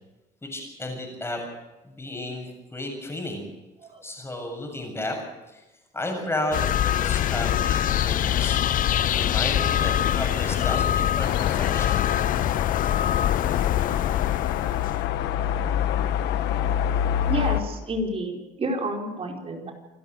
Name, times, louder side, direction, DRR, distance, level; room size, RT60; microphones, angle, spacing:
voice 1, 0.4-1.4 1.8-3.5 4.0-5.2 5.5-5.6 5.9-12.1, left 1 dB, 15° left, 2 dB, 7.5 m, -33 dB
sound 1, 6.5-15.1, left 11 dB, 55° left, 0.6 m, -24 dB
sound 2, 11.2-17.6, left 10 dB, 90° left, 1.5 m, -26 dB
voice 2, 17.0-19.7, right 1 dB, 35° right, 1 dB, 4.6 m, -30 dB
27.5 x 12.5 x 8.2 m, 1.0 s
cardioid pair, 110°, 17 cm